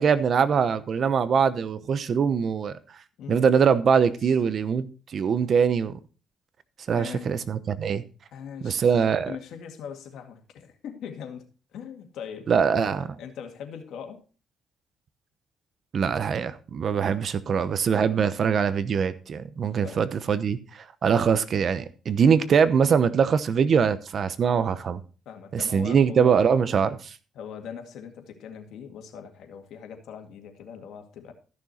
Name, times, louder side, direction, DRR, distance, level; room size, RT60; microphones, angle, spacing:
voice 1, 0.0-2.8 3.3-6.0 6.9-8.0 8.6-9.3 12.5-13.0 15.9-25.0 25.5-27.2, right 6 dB, 55° right, 0.9 m, -23 dB
voice 2, 3.2-3.5 4.2-4.3 7.0-7.3 8.3-9.0 9.3-11.4 11.7-14.2 18.0-18.2 19.8-20.0 25.3-26.5 27.3-31.3, left 7 dB, 80° left, 2.1 m, -40 dB
13.5 x 6.5 x 4.3 m
cardioid pair, 90°, 0 cm